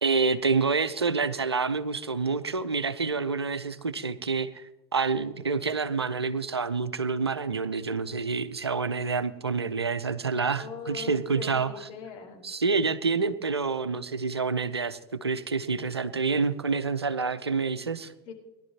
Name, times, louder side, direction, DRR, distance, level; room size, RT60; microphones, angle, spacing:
voice 1, 0.0-11.7 12.4-18.1, right 4 dB, 85° right, 14 dB, 0.8 m, -28 dB
voice 2, 10.6-12.4 18.3-18.4, left 5 dB, 45° left, 1 dB, 3.9 m, -40 dB
20.5 x 11.5 x 2.9 m, 0.95 s
figure-of-eight pair, 85°, 13 cm